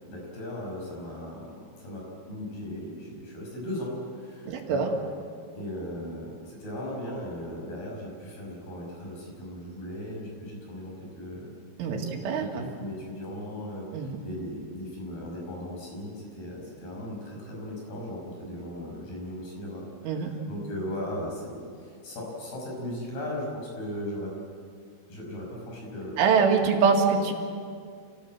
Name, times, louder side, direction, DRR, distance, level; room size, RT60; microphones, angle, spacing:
voice 1, 0.1-4.9 5.5-11.5 11.8-24.3 25.1-26.7, left 1 dB, 55° left, -2 dB, 7.6 m, -37 dB
voice 2, 4.5-4.9 11.8-12.0 12.3-12.6 13.9-14.2 20.0-20.4 26.2-27.3, right 5 dB, 85° right, 1 dB, 4.6 m, -24 dB
27.5 x 17.0 x 7.7 m, 2.2 s
omnidirectional pair, 5.5 m